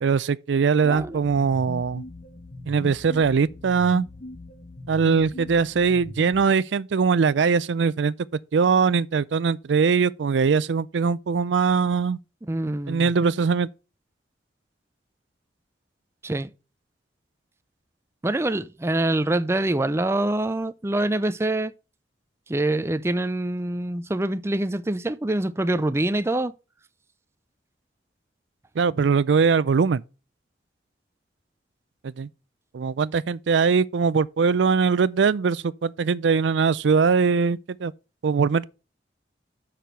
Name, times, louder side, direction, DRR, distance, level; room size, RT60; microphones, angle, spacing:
voice 1, 0.0-2.0 2.7-4.1 4.9-8.1 8.5-12.2 12.9-13.7 28.8-30.0 32.0-32.3 32.7-37.9 38.2-38.6, right 5 dB, 85° right, 0.4 m, -21 dB
sound 1, 0.8-6.5, left 1 dB, 40° left, 1.1 m, -40 dB
voice 2, 12.5-13.1 16.2-16.5 18.2-21.7 22.5-26.5, right 1 dB, 15° right, 0.4 m, -25 dB
6.6 x 5.9 x 6.7 m
head